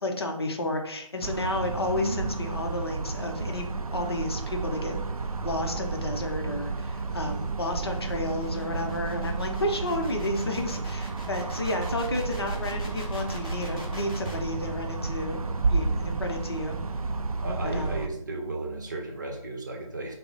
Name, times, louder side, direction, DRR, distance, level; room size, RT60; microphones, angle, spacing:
voice 1, 0.0-16.8 17.6-18.0, left 1 dB, 45° left, 3 dB, 0.7 m, -32 dB
sound 1, 1.2-18.1, right 4 dB, 85° right, 0.4 m, -31 dB
sound 2, 5.3-14.4, right 1 dB, 10° left, 0.7 m, -46 dB
voice 2, 17.4-20.1, right 2 dB, 35° right, 0 dB, 0.7 m, -34 dB
5.6 x 2.0 x 3.9 m, 0.79 s
figure-of-eight pair, 155°, 18 cm